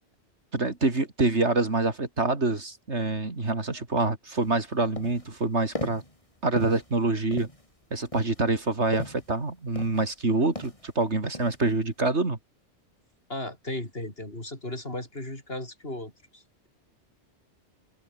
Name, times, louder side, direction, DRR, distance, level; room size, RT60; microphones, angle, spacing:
voice 1, 0.5-6.0 6.4-7.5 7.9-12.4, right 3 dB, 70° right, 3.5 m, -26 dB
sound 1, 4.4-4.5 5.0-5.3 5.7-6.1 6.5-6.9 7.3-7.7 8.1-9.3 9.8-10.2 10.6-10.9 11.3-11.7, left 1 dB, 30° left, 3.9 m, -38 dB
voice 2, 13.3-16.7, left 1 dB, 55° left, 6.3 m, -36 dB
omnidirectional pair, 1.2 m